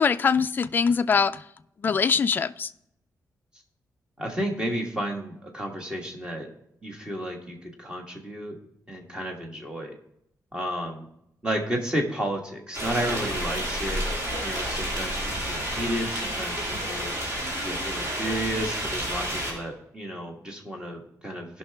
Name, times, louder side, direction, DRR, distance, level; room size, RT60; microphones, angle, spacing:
voice 1, 0.0-1.4 1.8-2.7, left 6 dB, 30° left, 12 dB, 0.3 m, -22 dB
voice 2, 4.2-6.5 6.8-8.6 8.9-9.9 10.5-11.1 11.4-14.0 14.4-17.2 17.6-21.6, equal, 15° right, 2 dB, 1.5 m, -32 dB
sound 1, 12.7-19.5, equal, 40° right, 3.6 m, -30 dB
17.0 x 5.8 x 3.4 m, 0.78 s
wide cardioid pair, 170°, 6 cm